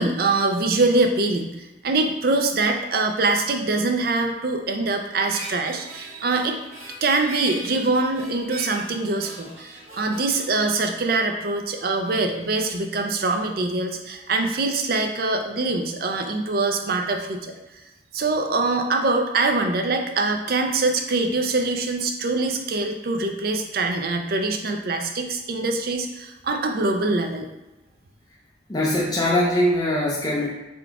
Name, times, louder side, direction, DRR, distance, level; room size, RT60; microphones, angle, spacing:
voice 1, 0.0-1.5 1.8-6.6 7.0-17.5 18.1-27.5, right 3 dB, 55° right, 4 dB, 0.5 m, -23 dB
Harmonica, 5.2-11.7, equal, 35° right, 1.3 m, -41 dB
voice 2, 28.7-30.5, left 1 dB, 20° left, -4 dB, 0.5 m, -22 dB
3.7 x 2.4 x 4.5 m, 1.0 s
head